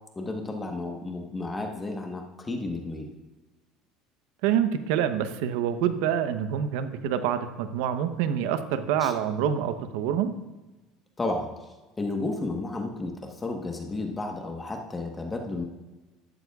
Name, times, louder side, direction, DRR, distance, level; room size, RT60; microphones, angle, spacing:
voice 1, 0.2-3.1 9.0-9.1 11.2-11.5 12.0-15.6, left 2 dB, 20° left, 2 dB, 1.2 m, -32 dB
voice 2, 4.4-10.3, right 9 dB, 80° right, 10 dB, 0.8 m, -26 dB
13.0 x 12.0 x 2.4 m, 1.2 s
supercardioid pair, 115°, 0 cm